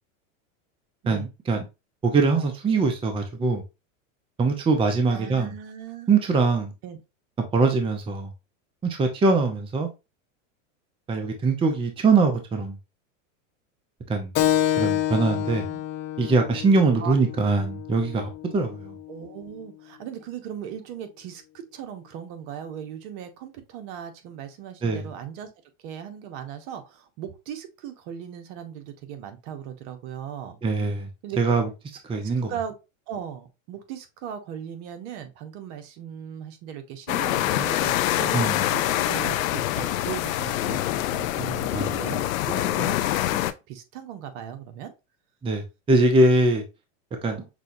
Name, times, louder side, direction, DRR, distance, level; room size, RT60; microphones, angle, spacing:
voice 1, 1.1-1.6 2.0-3.6 4.4-5.5 6.1-6.7 7.5-8.3 8.8-9.9 11.1-12.8 14.1-14.3 14.8-15.6 16.2-18.9 24.8-25.0 30.6-31.1 31.4-31.6 32.1-32.5 38.3-38.6 41.7-42.0 45.4-45.6 45.9-46.6 47.2-47.4, right 3 dB, 15° right, 0.6 m, -22 dB
voice 2, 5.1-6.1 6.8-7.0 15.6-15.8 16.9-17.2 19.1-25.5 25.8-30.6 31.2-31.4 32.2-32.7 33.1-44.9, right 9 dB, 55° right, 1.0 m, -38 dB
Keyboard (musical), 14.3-19.4, left 12 dB, 30° left, 0.4 m, -28 dB
sound 1, 37.1-43.5, left 14 dB, 85° left, 0.5 m, -25 dB
6.0 x 2.3 x 2.6 m
hypercardioid pair, 115°, 40 cm